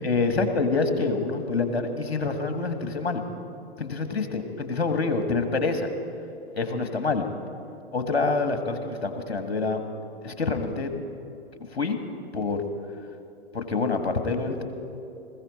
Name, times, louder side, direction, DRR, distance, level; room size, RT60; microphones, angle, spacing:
voice 1, 0.0-3.2 3.8-5.9 6.5-7.3 7.9-9.8 10.2-10.9 11.7-12.0 12.3-12.6 13.5-14.6, left 3 dB, 65° left, 7 dB, 1.7 m, -26 dB
20.5 x 15.0 x 4.2 m, 2.7 s
figure-of-eight pair, 110°, 32 cm